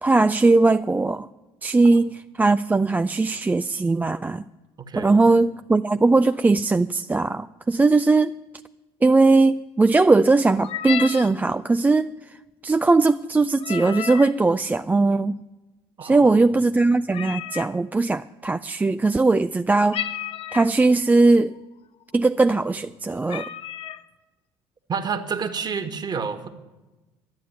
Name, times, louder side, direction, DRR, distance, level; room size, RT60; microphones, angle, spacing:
voice 1, 0.0-1.3 1.6-4.4 5.0-8.3 9.0-12.3 12.6-15.4 16.0-20.0 20.5-21.6 22.1-23.4, right 3 dB, 15° right, 10 dB, 0.4 m, -19 dB
voice 2, 4.8-5.4 16.0-16.6 24.9-26.5, right 6 dB, 35° right, 8 dB, 1.6 m, -30 dB
sound 1, 10.5-11.3 13.6-14.4 17.1-17.7 19.9-20.8 21.5-21.6 22.0-22.3 22.8-22.9 23.3-24.0, left 10 dB, 50° left, 0.7 m, -32 dB
12.0 x 9.3 x 9.6 m, 1.1 s
hypercardioid pair, 65°, 12 cm